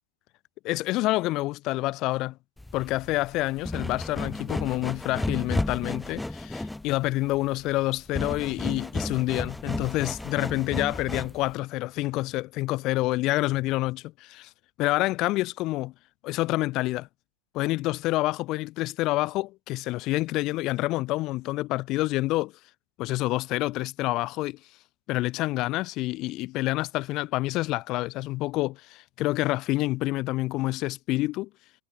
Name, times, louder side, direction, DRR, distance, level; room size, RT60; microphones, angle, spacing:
voice 1, 0.6-2.4 2.7-14.5 14.8-15.9 16.2-17.1 17.5-22.5 23.0-24.6 25.1-31.5, left 19 dB, 45° left, 3.7 m, -28 dB
sound 1, 2.6-11.5, left 2 dB, 5° left, 1.2 m, -33 dB
hypercardioid pair, 100°, 0 cm